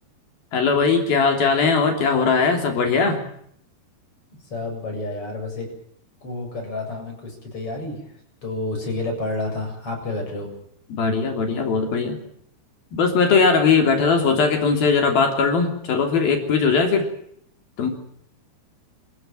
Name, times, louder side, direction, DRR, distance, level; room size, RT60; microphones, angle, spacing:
voice 1, 0.5-3.2 10.9-12.2 12.9-17.1 17.8-17.9, left 5 dB, 65° left, 4 dB, 4.9 m, -19 dB
voice 2, 4.5-5.7 6.2-8.1 8.4-10.5, left 2 dB, 35° left, 2 dB, 8.3 m, -29 dB
27.5 x 15.5 x 9.0 m, 0.69 s
omnidirectional pair, 4.7 m